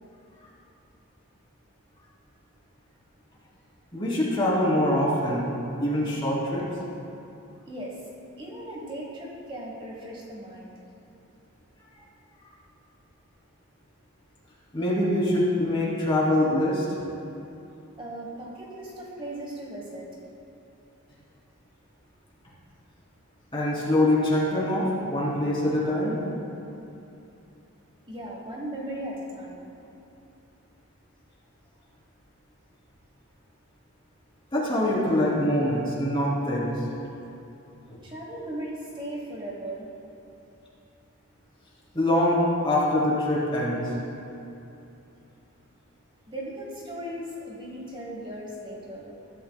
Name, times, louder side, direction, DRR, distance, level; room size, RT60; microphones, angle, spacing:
voice 1, 3.9-5.5 5.8-6.7 14.7-16.8 23.5-26.2 34.5-36.8 37.9-38.0 41.9-43.9, left 1 dB, 25° left, -6 dB, 3.1 m, -24 dB
voice 2, 7.6-8.0 8.4-10.7 18.0-20.1 28.1-29.7 38.0-39.9 46.3-49.2, right 1 dB, 25° right, -3 dB, 1.3 m, -37 dB
20.5 x 12.5 x 2.3 m, 2.8 s
head